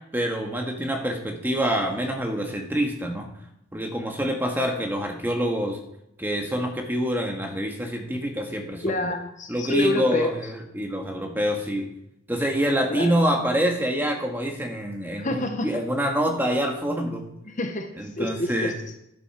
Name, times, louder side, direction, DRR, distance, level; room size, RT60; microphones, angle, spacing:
voice 1, 0.1-3.3 3.7-5.8 6.2-9.1 9.5-11.9 12.3-17.3 18.0-18.7, equal, 10° right, 2 dB, 1.6 m, -26 dB
voice 2, 8.8-10.3 12.9-13.1 15.2-15.7 17.5-17.9 18.2-18.9, left 2 dB, 35° left, 5 dB, 0.9 m, -27 dB
11.5 x 11.0 x 4.4 m, 0.81 s
head